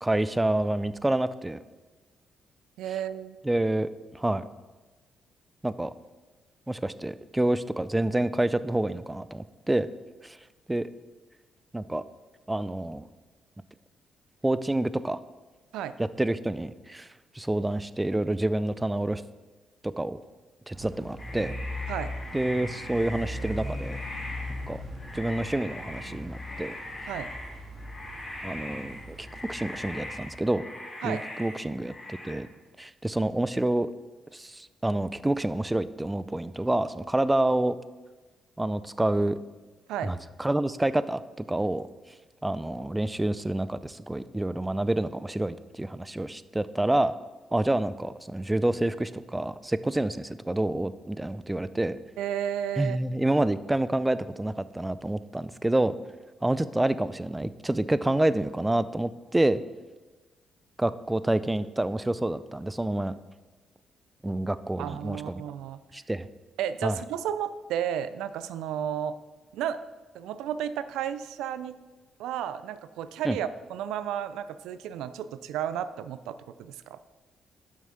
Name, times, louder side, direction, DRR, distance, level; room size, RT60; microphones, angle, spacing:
voice 1, 0.0-1.6 3.4-4.4 5.6-5.9 6.7-9.9 10.2-10.4 10.7-10.9 11.7-12.0 12.5-13.0 14.4-15.2 16.0-17.1 17.3-19.2 19.8-20.2 20.7-21.5 22.3-24.0 24.7-24.8 25.1-26.7 28.4-30.6 31.0-32.5 32.8-33.9 34.3-37.8 38.6-39.4 40.0-41.9 42.4-47.1 47.5-52.0 52.8-55.9 56.4-59.6 60.8-63.1 64.2-65.4 65.9-66.3 66.8-67.0 73.2-73.4, right 1 dB, 10° right, 15 dB, 0.4 m, -28 dB
voice 2, 2.8-3.4 15.7-16.0 21.9-22.1 27.1-27.3 31.0-31.3 39.9-40.1 52.2-53.0 64.8-65.8 66.6-69.2 69.5-69.8 70.1-71.8 72.2-77.0, right 9 dB, 90° right, 13 dB, 0.4 m, -32 dB
sound 1, 20.7-30.3, left 1 dB, 35° right, 2.3 m, -39 dB
sound 2, 21.2-32.3, left 1 dB, 25° left, 2.6 m, -41 dB
7.4 x 6.1 x 5.7 m, 1.3 s
cardioid pair, 90°, 0 cm